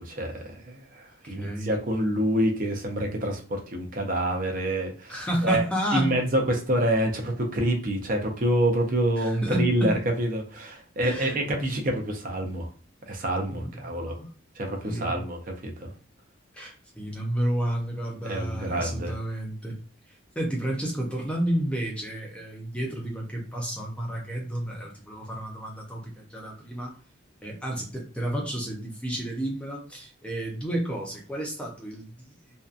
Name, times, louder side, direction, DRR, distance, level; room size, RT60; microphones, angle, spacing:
voice 1, 0.0-5.6 5.9-12.7 13.1-14.2 14.6-15.9 18.2-19.1, right 1 dB, 45° right, 2 dB, 0.5 m, -27 dB
voice 2, 1.2-1.7 5.1-6.2 9.2-10.0 11.0-11.4 13.5-14.3 14.8-15.1 16.5-19.8 20.1-26.9 27.4-32.4, right 1 dB, 5° left, -1 dB, 0.5 m, -31 dB
2.7 x 2.2 x 2.4 m, 0.41 s
head